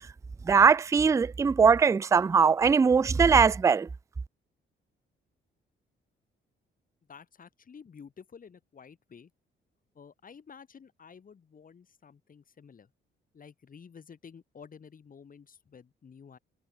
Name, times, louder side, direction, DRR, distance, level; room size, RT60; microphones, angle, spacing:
voice 1, 0.5-3.9, right 5 dB, 15° right, 0.3 m, -21 dB
voice 2, 7.1-9.3 9.9-12.9 13.3-16.4, left 6 dB, 45° left, 6.5 m, -51 dB
cardioid pair, 90°, 20 cm